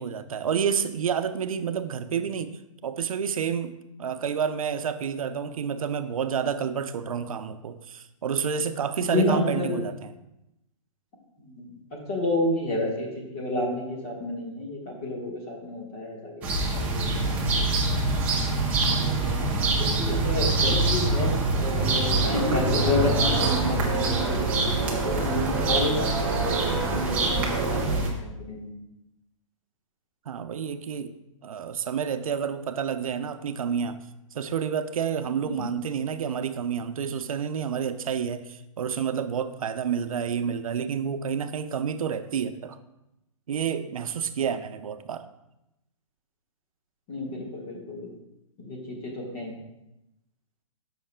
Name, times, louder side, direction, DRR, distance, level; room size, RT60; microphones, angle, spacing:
voice 1, 0.0-2.6 2.8-3.7 4.0-10.1 30.3-31.1 31.4-34.0 34.3-42.8 43.5-45.3, right 7 dB, 85° right, 10 dB, 0.6 m, -29 dB
voice 2, 9.0-9.8 11.4-11.6 11.9-16.5 16.7-17.8 18.9-24.5 25.0-28.7 35.4-35.6 47.1-48.1 48.6-49.5, left 2 dB, 25° left, -1 dB, 1.4 m, -30 dB
sound 1, 16.4-28.1, right 2 dB, 10° right, 0.6 m, -25 dB
sound 2, 21.3-27.8, right 3 dB, 35° right, 2.8 m, -30 dB
12.5 x 5.8 x 2.2 m, 0.89 s
hypercardioid pair, 170°, 17 cm